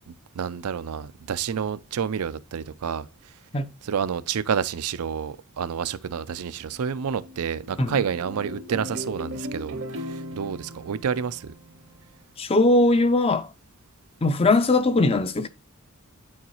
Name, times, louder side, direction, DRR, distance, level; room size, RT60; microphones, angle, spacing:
voice 1, 0.1-3.3 3.8-11.5, right 7 dB, 85° right, 0.5 m, -29 dB
sound 1, 6.7-12.1, equal, 60° right, 0.8 m, -38 dB
voice 2, 12.4-13.5 14.2-15.5, left 2 dB, 25° left, 0.5 m, -20 dB
8.7 x 3.9 x 3.0 m
head